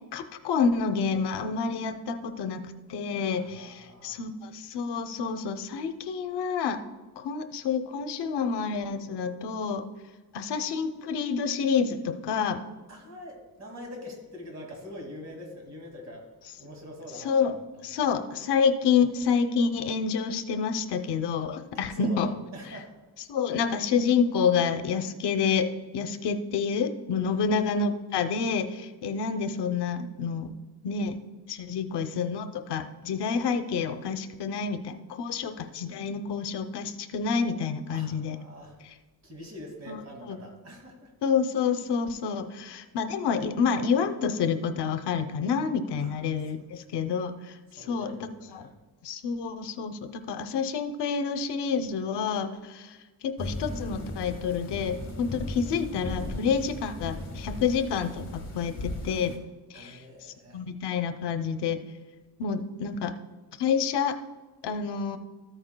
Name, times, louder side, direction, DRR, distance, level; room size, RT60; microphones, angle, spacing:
voice 1, 0.1-6.8 7.2-9.8 10.3-12.6 17.2-17.5 17.8-22.3 23.3-25.7 25.9-30.5 30.8-31.1 31.5-38.4 39.9-40.0 40.3-40.4 41.2-47.6 47.9-48.1 48.5-48.7 49.0-53.0 53.2-59.4 59.7-60.0 60.5-61.8 62.4-63.1 63.6-64.2 64.6-65.2, left 6 dB, 90° left, 9 dB, 0.7 m, -28 dB
voice 2, 3.3-4.2 12.9-18.1 21.9-22.9 27.4-27.5 37.9-38.8 39.2-41.1 46.0-46.5 47.7-48.8 59.7-60.6, left 1 dB, 40° right, 1 dB, 2.2 m, -44 dB
sound 1, 53.4-59.4, left 2 dB, 30° left, 1.7 m, -37 dB
13.5 x 9.0 x 2.2 m, 1.3 s
wide cardioid pair, 170°, 39 cm